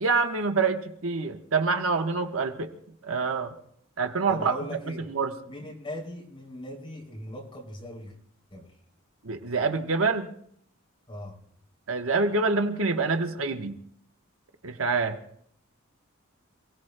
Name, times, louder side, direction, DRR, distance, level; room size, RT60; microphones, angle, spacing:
voice 1, 0.0-2.7 3.0-3.5 4.0-4.6 5.1-5.3 9.2-10.3 11.9-13.7 14.6-15.2, right 4 dB, 75° right, 5 dB, 1.1 m, -26 dB
voice 2, 4.3-5.1 5.5-8.2 8.5-8.8 11.1-11.4, equal, 25° left, -2 dB, 3.1 m, -39 dB
28.0 x 17.5 x 2.2 m, 0.67 s
head